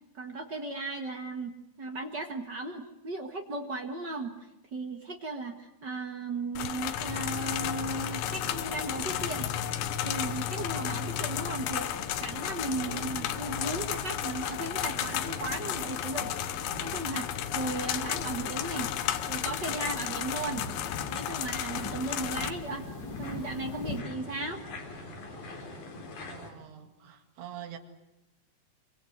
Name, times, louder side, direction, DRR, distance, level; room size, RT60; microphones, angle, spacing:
voice 1, 0.1-4.4 4.7-9.5 10.0-16.3 16.6-18.9 19.3-20.6 21.1-22.9 23.2-24.6, right 2 dB, 55° right, 5 dB, 1.2 m, -36 dB
sound 1, 6.6-22.5, left 11 dB, 70° left, 2.9 m, -34 dB
sound 2, 6.8-24.0, left 2 dB, 30° left, 3.0 m, -47 dB
sound 3, 6.9-26.5, left 4 dB, 50° left, 5.0 m, -41 dB
voice 2, 26.2-27.8, right 10 dB, 75° right, 6 dB, 4.1 m, -45 dB
25.5 x 25.0 x 8.0 m, 0.93 s
omnidirectional pair, 4.8 m